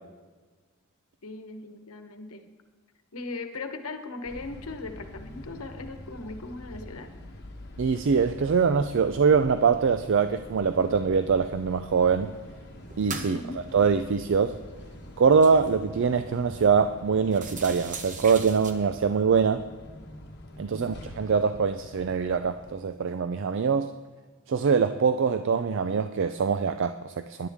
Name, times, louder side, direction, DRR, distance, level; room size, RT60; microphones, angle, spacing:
voice 1, 1.2-2.5 3.1-7.1 13.2-13.7 20.7-21.0, left 3 dB, 80° left, 7 dB, 1.1 m, -39 dB
sound 1, 4.2-22.7, left 1 dB, 50° left, 1.2 m, -45 dB
voice 2, 7.8-12.3 13.0-13.4 13.7-14.6 15.2-19.6 20.6-23.9 24.5-27.5, right 5 dB, 60° right, 10 dB, 0.4 m, -23 dB
sound 2, 10.9-11.0 11.4-12.2 12.6-16.3 16.7-16.8 17.2-18.7, right 4 dB, 35° right, 1.0 m, -43 dB
20.0 x 11.0 x 3.6 m, 1.4 s
head